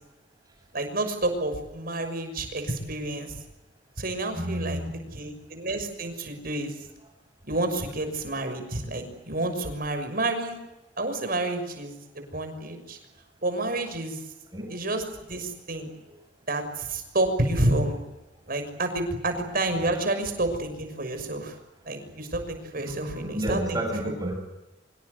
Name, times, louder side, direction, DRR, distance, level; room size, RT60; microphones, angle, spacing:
voice 1, 0.7-3.4 4.0-4.8 5.1-6.7 7.5-10.6 11.0-13.0 13.4-14.2 14.7-15.9 16.5-18.0 18.5-21.6 21.9-23.8, right 2 dB, 50° right, 7 dB, 6.3 m, -29 dB
voice 2, 4.3-5.2 14.5-14.6 16.1-16.2 22.8-24.4, right 1 dB, 20° right, 4 dB, 7.8 m, -31 dB
26.0 x 24.5 x 8.2 m, 0.98 s
head